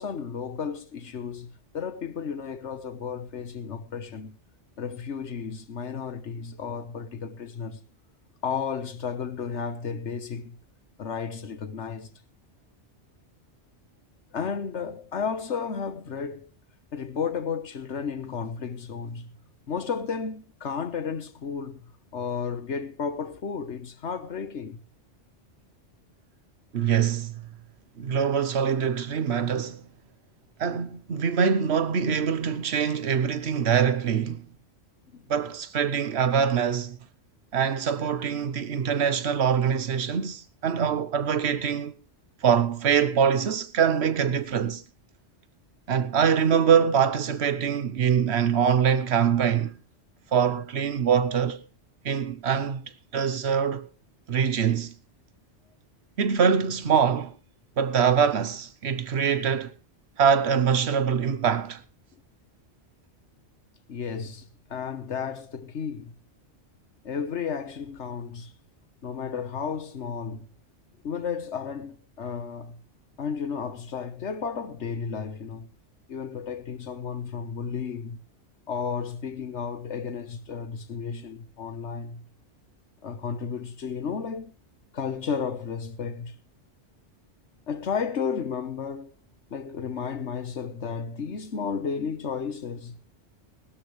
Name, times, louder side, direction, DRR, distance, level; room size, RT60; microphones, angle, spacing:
voice 1, 0.0-4.4 4.8-7.8 8.4-10.6 11.0-12.1 14.3-16.5 16.9-19.3 19.7-24.8 35.1-35.2 63.9-66.1 67.0-68.5 69.0-70.5 71.0-72.8 73.2-75.7 76.1-78.2 78.7-82.2 83.0-84.5 84.9-86.3 87.7-89.1 89.5-93.0, left 6 dB, 75° left, 1.5 m, -33 dB
voice 2, 26.7-27.4 28.0-29.8 30.6-34.5 35.3-37.0 37.5-41.9 42.4-44.8 45.9-49.7 50.3-51.6 52.0-53.9 54.3-54.9 56.2-57.3 57.8-59.7 60.2-61.8, right 7 dB, 65° right, 1.2 m, -24 dB
19.5 x 13.0 x 3.2 m
omnidirectional pair, 1.2 m